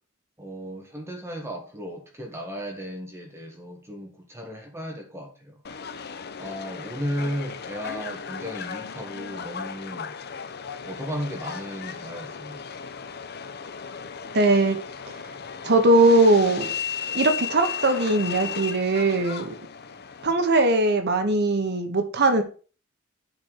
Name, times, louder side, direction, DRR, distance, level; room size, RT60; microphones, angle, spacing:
voice 1, 0.4-5.6 6.4-10.1 10.8-12.6, equal, 15° right, 1.6 m, -35 dB
Subway metro underground, 5.6-20.3, left 6 dB, 50° left, 0.8 m, -36 dB
voice 2, 14.3-14.8 15.6-16.7 17.1-19.5 20.2-22.4, right 2 dB, 55° right, 1.3 m, -20 dB
9.5 x 4.5 x 6.3 m
head